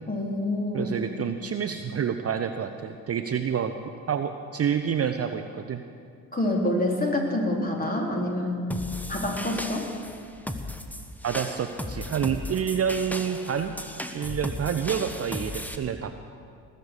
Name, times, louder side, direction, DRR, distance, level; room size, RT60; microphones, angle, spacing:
voice 1, 0.1-0.9 6.3-8.6 9.1-9.9, left 1 dB, 20° left, 0 dB, 3.6 m, -27 dB
voice 2, 0.7-3.7 4.1-5.8 11.2-13.7 14.1-16.3, right 8 dB, 35° right, 8 dB, 0.7 m, -28 dB
sound 1, 8.7-15.8, left 1 dB, 5° left, 1.1 m, -36 dB
19.5 x 6.7 x 8.2 m, 2.3 s
hypercardioid pair, 55°, 44 cm